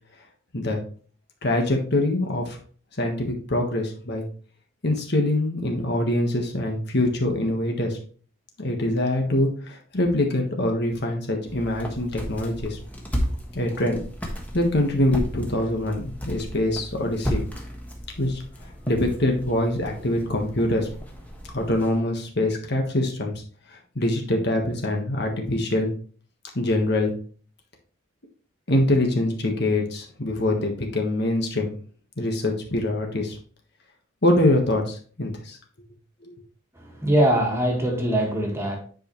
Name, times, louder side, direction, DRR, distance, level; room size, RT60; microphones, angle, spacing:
voice 1, 1.4-2.6 3.0-4.3 4.8-8.0 8.6-12.8 13.5-14.0 14.5-17.4 18.2-18.4 18.9-20.9 21.5-23.4 23.7-25.9 26.5-27.1 28.7-31.8 32.2-33.4 34.2-35.6 36.2-36.3, left 1 dB, 50° left, 2 dB, 1.4 m, -24 dB
sound 1, 11.5-22.0, equal, 5° left, 1.3 m, -34 dB
voice 2, 36.8-38.8, right 1 dB, 15° right, 0 dB, 1.8 m, -22 dB
9.7 x 5.2 x 3.1 m, 0.43 s
head